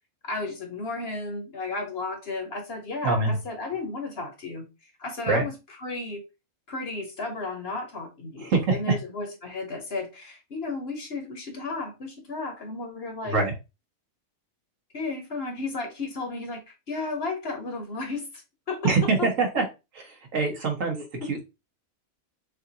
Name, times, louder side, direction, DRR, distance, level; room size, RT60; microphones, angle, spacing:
voice 1, 0.2-4.6 5.0-5.5 5.8-6.2 6.7-13.4 14.9-18.4 18.7-19.3 21.2-21.3, left 3 dB, 50° left, 1.2 m, -33 dB
voice 2, 3.0-3.4 5.3-5.4 8.4-9.0 13.2-13.5 18.8-19.6 20.3-21.4, right 4 dB, 65° right, 1.6 m, -24 dB
6.6 x 2.5 x 2.9 m
omnidirectional pair, 1.4 m